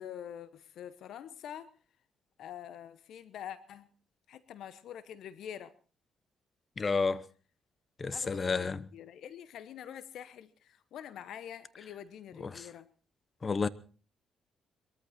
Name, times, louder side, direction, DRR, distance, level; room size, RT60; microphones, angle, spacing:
voice 1, 0.0-1.7 2.4-3.9 4.3-5.7 8.1-12.9, left 9 dB, 75° left, 0.9 m, -46 dB
voice 2, 6.8-7.2 8.0-8.8 12.5-12.6 13.4-13.7, left 4 dB, 35° left, 0.9 m, -30 dB
21.5 x 14.0 x 4.3 m
cardioid pair, 90°, 0 cm